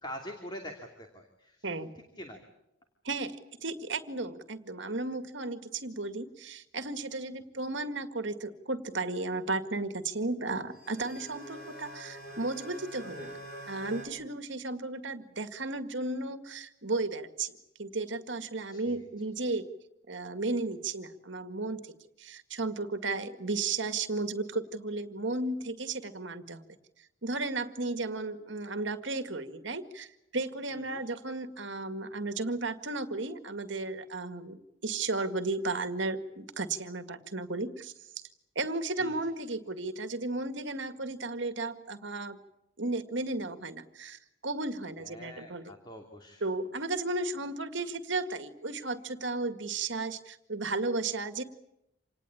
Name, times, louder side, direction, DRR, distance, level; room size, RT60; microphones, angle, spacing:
voice 1, 0.0-1.7 2.2-2.4 18.7-19.1 30.7-31.1 39.0-39.2 45.0-46.4, equal, 20° left, 2 dB, 2.8 m, -44 dB
voice 2, 3.0-17.5 17.8-19.6 20.1-21.9 22.2-26.6 27.2-37.9 38.6-42.4 42.8-45.7 46.4-51.4, right 3 dB, 70° right, 9 dB, 1.9 m, -34 dB
sound 1, 10.7-14.1, right 1 dB, 50° left, 7.5 m, -45 dB
27.5 x 19.5 x 8.6 m, 0.86 s
head